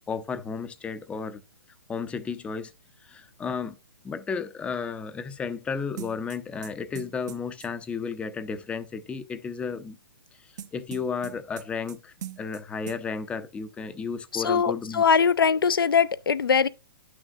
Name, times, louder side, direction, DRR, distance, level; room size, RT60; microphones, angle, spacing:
voice 1, 0.1-1.4 1.9-2.7 3.0-3.7 4.0-10.0 10.7-15.0, left 5 dB, 10° left, 0.6 m, -33 dB
sound 1, 6.0-7.7 10.6-12.0 12.2-12.6 12.9-13.0, right 10 dB, 50° right, 0.9 m, -41 dB
voice 2, 14.3-16.7, left 6 dB, 75° left, 0.6 m, -22 dB
10.5 x 6.3 x 2.3 m
hypercardioid pair, 130°, 12 cm